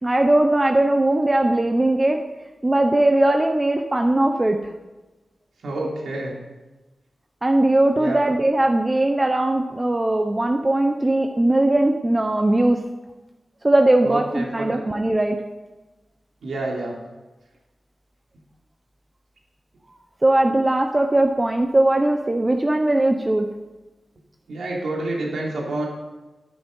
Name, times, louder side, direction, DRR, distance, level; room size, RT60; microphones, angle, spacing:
voice 1, 0.0-2.2 2.6-4.6 7.4-12.8 13.6-15.4 20.2-23.5, right 1 dB, 25° right, 4 dB, 0.9 m, -19 dB
voice 2, 5.6-6.3 8.0-8.2 14.0-14.8 16.4-16.9 24.5-25.9, right 2 dB, 90° right, -2 dB, 3.2 m, -28 dB
11.0 x 11.0 x 5.6 m, 1.1 s
wide cardioid pair, 75°, 0 cm